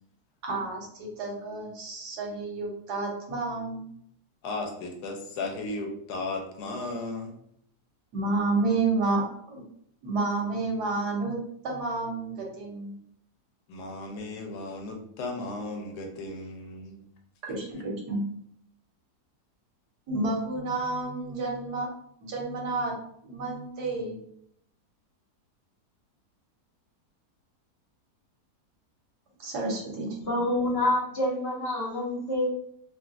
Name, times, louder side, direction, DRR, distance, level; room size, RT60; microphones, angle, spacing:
voice 1, 0.4-3.8 8.1-9.6 10.0-11.4 11.6-12.9 17.4-18.2 20.1-21.9 22.2-23.0 23.2-24.2 29.4-30.1, right 3 dB, 80° right, -1 dB, 1.4 m, -30 dB
voice 2, 4.4-7.3 13.7-17.0, left 2 dB, 85° left, 3 dB, 1.2 m, -35 dB
voice 3, 30.2-32.5, left 1 dB, 45° left, -4 dB, 0.9 m, -27 dB
3.9 x 2.2 x 2.4 m, 0.69 s
omnidirectional pair, 1.7 m